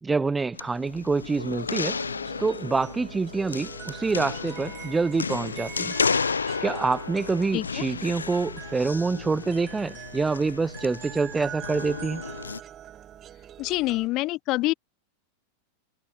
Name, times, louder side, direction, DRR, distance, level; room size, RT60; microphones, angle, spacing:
voice 1, 0.0-2.0 2.4-5.9 6.6-12.2, right 4 dB, 10° right, 0.9 m, -26 dB
sound 1, 0.5-12.6, left 5 dB, 75° left, 0.7 m, -33 dB
sound 2, 0.9-14.1, right 10 dB, 30° right, 1.5 m, -44 dB
voice 2, 7.5-7.8 13.6-14.7, left 19 dB, 40° left, 0.8 m, -26 dB
figure-of-eight pair, 90°, 0 cm